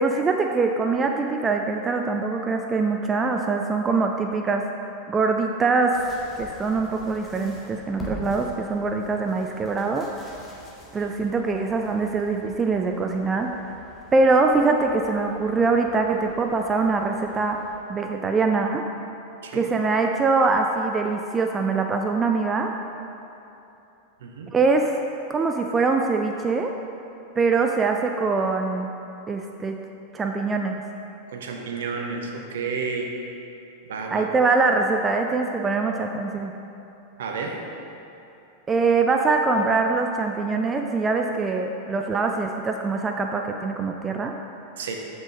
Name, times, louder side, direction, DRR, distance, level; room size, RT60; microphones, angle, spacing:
voice 1, 0.0-4.7 5.1-6.0 6.4-10.1 10.9-13.7 14.1-17.6 17.9-18.8 19.5-22.7 24.5-24.9 25.3-26.7 27.4-28.9 29.3-29.8 30.1-30.8 34.1-36.5 38.7-44.3, right 4 dB, 20° right, 3 dB, 0.3 m, -23 dB
sound 1, 5.9-17.8, right 1 dB, 10° left, 1.3 m, -44 dB
voice 2, 24.2-24.5 31.3-33.1 33.8-34.3 37.2-37.6 44.8-45.0, right 4 dB, 60° right, 2 dB, 0.8 m, -31 dB
7.5 x 5.8 x 3.8 m, 2.9 s
figure-of-eight pair, 90°, 0 cm